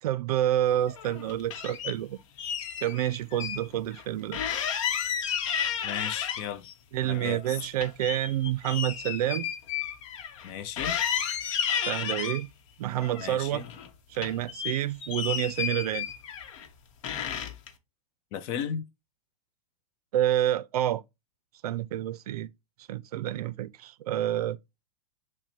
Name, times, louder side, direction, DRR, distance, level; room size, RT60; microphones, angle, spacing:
voice 1, 0.0-2.2 2.8-4.4 6.9-9.5 11.8-12.5 12.8-13.6 14.1-16.1 20.1-21.0 21.6-22.5 22.9-24.6, right 12 dB, 80° right, 0.4 m, -28 dB
sound 1, 0.9-1.9 2.4-3.6 3.9-4.0 4.3-6.7 7.1-10.5 10.8-12.4 13.0-13.9 14.1-16.7 17.0-17.7, left 8 dB, 55° left, 0.9 m, -32 dB
voice 2, 5.8-6.7 7.0-7.6 10.4-11.0 13.2-13.7 18.3-18.8, left 8 dB, 30° left, 0.4 m, -35 dB
5.9 x 2.1 x 4.2 m
supercardioid pair, 155°, 19 cm